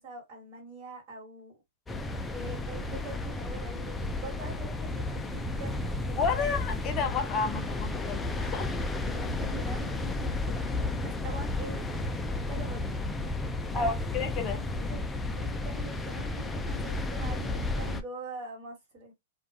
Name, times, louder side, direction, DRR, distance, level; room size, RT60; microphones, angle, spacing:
voice 1, 0.0-1.5 2.3-6.6 9.0-11.8 12.3-13.0 13.7-14.0 14.7-19.1, right 2 dB, 45° right, 1.4 m, -44 dB
sound 1, 1.9-18.0, left 2 dB, 10° left, 0.3 m, -33 dB
voice 2, 6.1-8.8 13.7-14.6, left 5 dB, 30° left, 0.7 m, -31 dB
2.3 x 2.2 x 2.7 m
hypercardioid pair, 135°, 0 cm